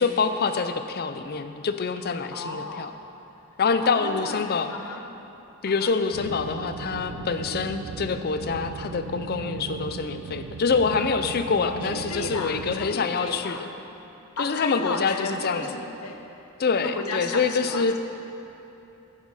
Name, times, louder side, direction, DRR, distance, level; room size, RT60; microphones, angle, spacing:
voice 1, 0.0-2.9 3.6-4.7 5.6-13.6 14.4-15.8 16.6-18.0, left 5 dB, 45° left, 9 dB, 0.5 m, -26 dB
voice 2, 2.3-2.9 3.8-5.0 5.7-5.9 11.6-13.6 14.4-16.2 16.8-18.0, left 3 dB, 80° left, 3 dB, 1.0 m, -34 dB
sound 1, 6.1-12.9, right 6 dB, 65° right, 0.3 m, -37 dB
sound 2, 6.7-14.3, equal, 60° left, 1.2 m, -51 dB
13.0 x 7.4 x 4.8 m, 2.9 s
head